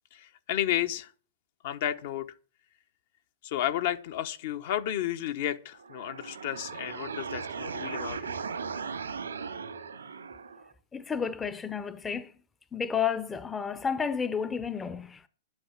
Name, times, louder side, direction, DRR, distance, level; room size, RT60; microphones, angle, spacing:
voice 1, 0.1-1.1 1.6-2.3 3.4-8.4, left 11 dB, 55° left, 1.0 m, -32 dB
sound 1, 5.7-10.7, right 5 dB, 90° right, 2.2 m, -37 dB
voice 2, 10.9-12.3 12.7-15.3, left 6 dB, 15° left, 0.7 m, -31 dB
10.5 x 8.9 x 7.4 m
hypercardioid pair, 115°, 0 cm